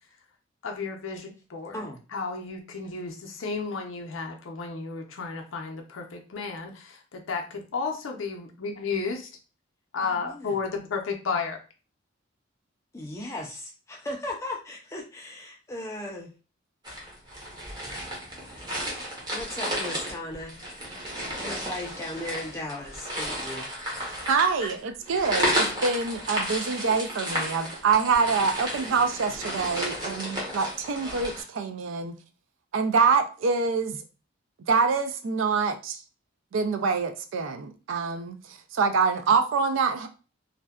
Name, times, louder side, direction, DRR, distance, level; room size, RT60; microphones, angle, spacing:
voice 1, 0.6-1.8 2.1-9.3 9.9-11.6, left 4 dB, 70° left, 0.5 m, -33 dB
voice 2, 10.0-10.6 12.9-16.3 19.3-20.6 21.3-23.7 24.6-24.7, left 1 dB, 15° left, 0.3 m, -37 dB
sound 1, 16.8-31.4, equal, 20° right, 0.7 m, -32 dB
voice 3, 24.3-32.1 32.7-34.0 34.7-36.0 36.5-40.1, right 5 dB, 70° right, 0.4 m, -25 dB
2.5 x 2.1 x 2.2 m
head